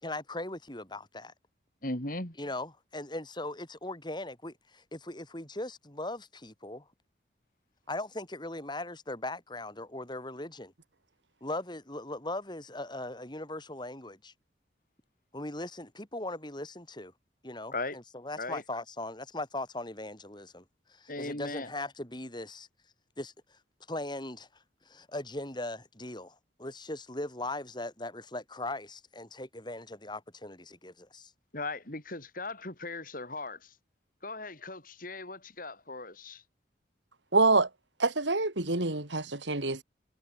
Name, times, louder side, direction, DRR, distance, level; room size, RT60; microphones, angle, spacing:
voice 1, 0.0-1.3 2.4-6.8 7.9-10.7 11.4-14.3 15.3-17.1 17.4-22.7 23.2-23.6 23.9-24.5 24.8-31.3, left 2 dB, 25° left, 6.3 m, -39 dB
voice 2, 1.8-2.4 17.7-18.0 18.4-18.6 21.1-21.7 31.5-33.8 34.2-36.4, left 2 dB, 50° left, 5.6 m, -38 dB
voice 3, 37.3-37.7 38.0-39.8, right 3 dB, 80° right, 3.1 m, -26 dB
head